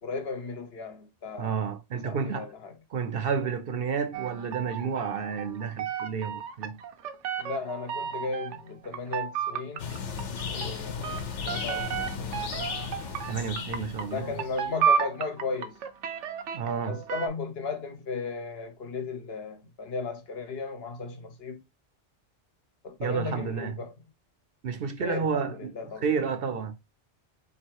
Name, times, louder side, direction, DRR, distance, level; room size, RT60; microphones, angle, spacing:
voice 1, 0.0-1.6 2.0-2.8 7.4-9.9 10.5-12.7 14.1-15.8 16.9-21.6 22.8-23.9 25.0-26.0, left 4 dB, 60° left, 1.1 m, -35 dB
voice 2, 1.4-2.5 2.9-6.8 13.3-14.3 16.5-17.0 23.0-23.8 24.6-26.7, right 6 dB, 60° right, 0.7 m, -31 dB
sound 1, 4.1-8.7 8.9-17.3, right 7 dB, 85° right, 1.0 m, -32 dB
sound 2, 9.8-14.7, left 6 dB, 80° left, 1.1 m, -35 dB
3.6 x 3.0 x 4.5 m
omnidirectional pair, 1.2 m